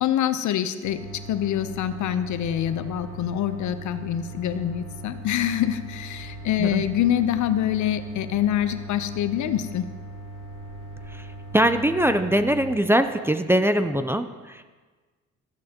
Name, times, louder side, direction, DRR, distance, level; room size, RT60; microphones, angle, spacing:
voice 1, 0.0-1.0 1.3-9.9, left 11 dB, 75° left, 11 dB, 0.7 m, -25 dB
sound 1, 0.8-12.8, right 1 dB, 60° right, 2.6 m, -39 dB
voice 2, 11.5-14.6, right 1 dB, 10° right, 9 dB, 0.5 m, -22 dB
14.0 x 11.5 x 2.9 m, 1.3 s
cardioid pair, 90°, 30 cm